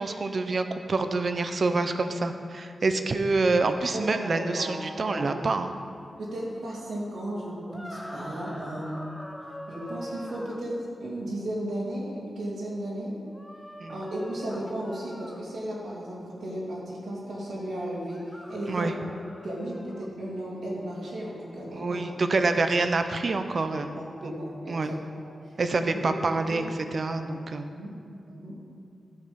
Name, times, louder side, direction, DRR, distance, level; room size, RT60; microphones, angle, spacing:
voice 1, 0.0-5.7 13.8-14.0 18.7-18.9 21.7-24.0 24.2-24.3 24.7-24.9 25.6-26.6 26.9-27.7, right 3 dB, 50° right, 8 dB, 0.6 m, -27 dB
voice 2, 3.9-5.4 6.2-9.1 9.7-13.2 13.9-19.0 19.4-22.1 23.8-26.6 27.1-27.2 27.7-27.9 28.3-28.6, right 1 dB, 85° right, -6 dB, 2.7 m, -35 dB
sound 1, 7.7-10.6 13.3-15.4 18.0-20.1, equal, 5° left, 0.7 m, -43 dB
13.0 x 6.6 x 5.2 m, 2.3 s
wide cardioid pair, 125°, 0 cm